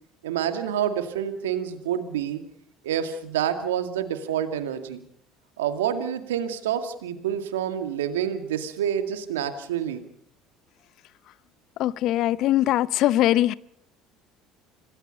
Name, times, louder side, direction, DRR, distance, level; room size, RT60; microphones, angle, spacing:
voice 1, 0.2-2.4 2.8-5.0 5.6-10.0, right 9 dB, 85° right, 8 dB, 2.1 m, -28 dB
voice 2, 11.8-13.5, left 14 dB, 60° left, 19 dB, 0.8 m, -21 dB
26.5 x 18.0 x 5.4 m, 0.67 s
hypercardioid pair, 70°, 0 cm